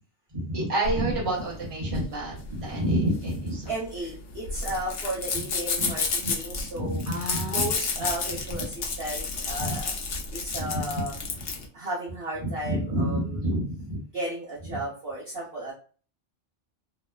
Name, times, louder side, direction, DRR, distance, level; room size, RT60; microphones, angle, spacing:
voice 1, 0.3-3.7 5.8-5.9 6.7-7.7 9.6-9.8 10.5-10.8 12.4-14.0 14.7-14.8, right 1 dB, 30° right, -6 dB, 1.0 m, -28 dB
sound 1, 0.8-11.7, left 4 dB, 60° left, 0.8 m, -31 dB
voice 2, 3.7-7.1 7.5-9.9 10.3-11.1 11.7-13.4 14.1-15.7, right 1 dB, 55° right, -7 dB, 1.0 m, -34 dB
3.0 x 2.0 x 2.3 m, 0.39 s
omnidirectional pair, 1.2 m